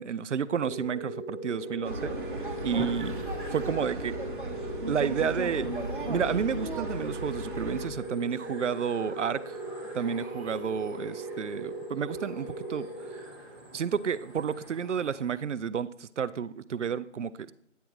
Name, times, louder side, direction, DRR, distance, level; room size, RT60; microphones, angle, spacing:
voice 1, 0.0-2.1 2.6-3.1 3.5-4.1 4.9-5.7 6.1-9.6 9.9-12.9 13.7-17.5, right 7 dB, 75° right, 16 dB, 0.5 m, -31 dB
sound 1, 0.6-13.7, right 2 dB, 20° left, 1.3 m, -39 dB
sound 2, 1.5-15.5, right 1 dB, 10° right, 1.6 m, -48 dB
sound 3, 1.8-7.9, right 1 dB, 45° right, 1.0 m, -35 dB
9.2 x 3.6 x 4.5 m, 0.75 s
figure-of-eight pair, 175°, 36 cm